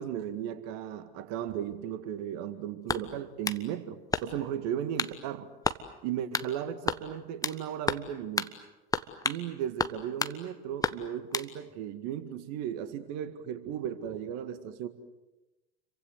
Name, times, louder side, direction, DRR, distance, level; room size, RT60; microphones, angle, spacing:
voice 1, 0.0-5.5 6.0-8.5 9.2-14.9, right 10 dB, 50° right, 11 dB, 2.1 m, -36 dB
sound 1, 2.9-3.6 4.1-4.5 5.0-5.2 5.6-5.8 6.3-6.5 6.9-7.6 7.9-8.1 8.4-8.5 8.9-9.4 9.8-10.4 10.8-11.5, left 3 dB, 10° left, 1.3 m, -31 dB
30.0 x 24.0 x 8.0 m, 1.0 s
figure-of-eight pair, 75°, 33 cm